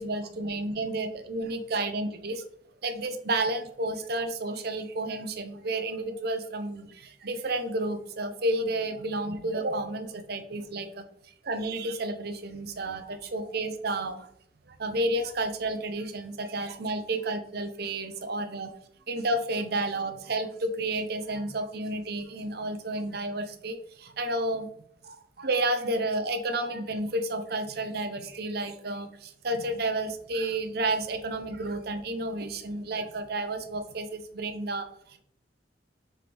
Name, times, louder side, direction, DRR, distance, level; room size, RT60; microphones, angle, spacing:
voice 1, 0.0-2.4 2.8-11.0 11.4-14.3 14.7-18.7 19.1-24.7 25.0-35.2, right 2 dB, 60° right, 8 dB, 0.8 m, -31 dB
6.1 x 4.6 x 3.4 m, 0.70 s
head